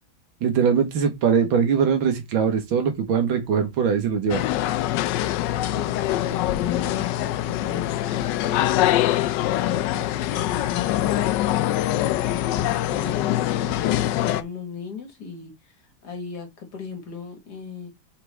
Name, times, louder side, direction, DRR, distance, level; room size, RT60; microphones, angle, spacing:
voice 1, 0.4-4.4, right 7 dB, 80° right, 2.0 m, -21 dB
sound 1, 4.3-14.4, left 13 dB, 75° left, 1.1 m, -24 dB
voice 2, 5.4-9.0 9.4-11.4 12.1-17.9, left 5 dB, 55° left, 2.1 m, -37 dB
7.8 x 4.9 x 3.4 m
omnidirectional pair, 2.1 m